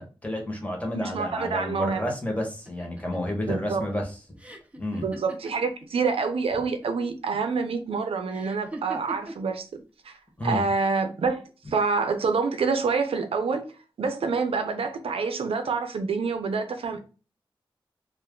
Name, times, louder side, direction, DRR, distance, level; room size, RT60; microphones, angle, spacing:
voice 1, 0.0-4.1 4.8-5.0 10.4-10.6, left 1 dB, 15° left, 1.1 m, -30 dB
voice 2, 0.9-2.1 3.5-3.8 5.0-9.7 10.0-10.2 10.4-13.7 14.0-17.1, right 4 dB, 90° right, 0.5 m, -27 dB
sound 1, 2.7-6.2 6.5-7.2 8.3-9.5 10.5-11.1, right 1 dB, 15° right, 0.7 m, -42 dB
2.4 x 2.2 x 3.6 m
cardioid pair, 55°, 9 cm